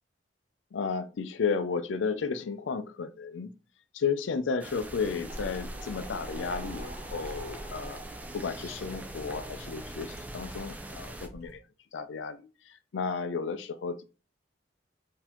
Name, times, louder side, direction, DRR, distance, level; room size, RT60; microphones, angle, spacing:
voice 1, 0.7-3.5 3.9-8.0 8.3-11.6 11.9-14.0, left 5 dB, 85° left, 0.4 m, -33 dB
sound 1, 4.6-11.3, right 1 dB, 10° right, 0.3 m, -43 dB
sound 2, 4.7-11.6, equal, 35° right, 1.5 m, -44 dB
4.0 x 2.7 x 2.8 m
head